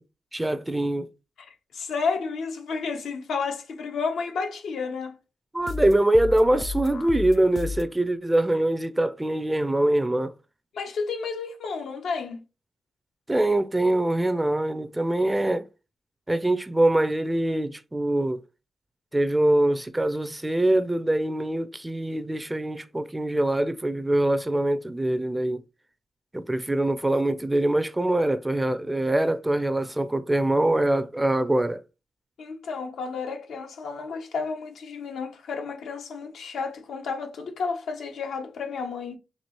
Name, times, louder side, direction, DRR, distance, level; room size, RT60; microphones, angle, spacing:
voice 1, 0.3-1.1 5.5-10.3 13.3-15.7 16.3-18.4 19.1-25.6 26.3-31.8, right 1 dB, 15° right, 0.4 m, -23 dB
voice 2, 1.4-5.2 10.7-12.4 32.4-39.2, left 5 dB, 85° left, 0.8 m, -31 dB
sound 1, 5.6-8.0, left 4 dB, 55° left, 0.4 m, -33 dB
4.3 x 2.8 x 3.0 m
cardioid pair, 85°, 0 cm